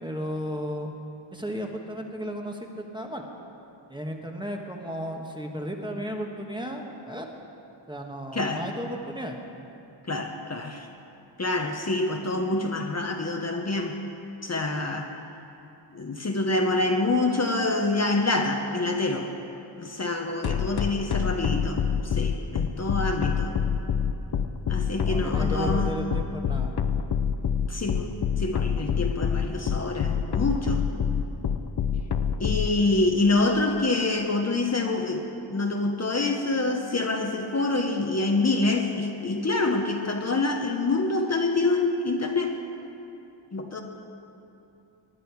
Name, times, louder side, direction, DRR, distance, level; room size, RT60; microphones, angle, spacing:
voice 1, 0.0-0.9 1.3-3.2 3.9-7.3 7.9-9.4 20.4-20.6 25.0-26.7 32.8-32.9, equal, 10° right, 1 dB, 1.3 m, -34 dB
voice 2, 10.1-10.9 11.4-13.9 14.4-15.1 15.9-19.3 19.8-23.5 24.7-26.0 27.7-28.1 28.4-30.9 32.4-42.6 43.5-43.8, left 2 dB, 35° left, 3 dB, 1.0 m, -26 dB
sound 1, 20.4-32.7, left 7 dB, 55° left, 0.7 m, -25 dB
20.0 x 11.0 x 4.7 m, 2.8 s
wide cardioid pair, 110°, 46 cm